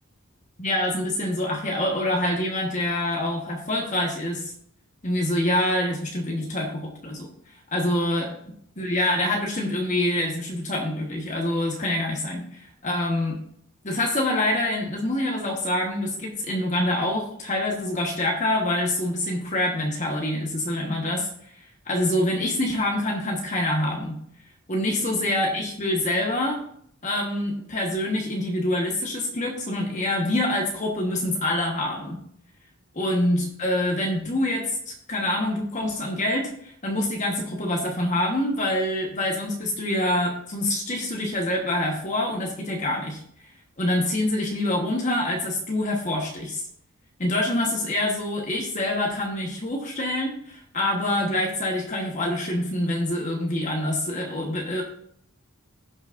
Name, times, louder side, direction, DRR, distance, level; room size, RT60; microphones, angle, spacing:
voice 1, 0.6-4.5 5.0-7.3 7.7-8.3 8.8-13.4 13.8-21.3 21.6-24.2 24.7-26.6 27.0-32.2 33.0-43.2 43.8-46.6 47.2-54.8, left 1 dB, 35° left, 0 dB, 1.3 m, -26 dB
16.0 x 6.1 x 2.6 m, 0.68 s
head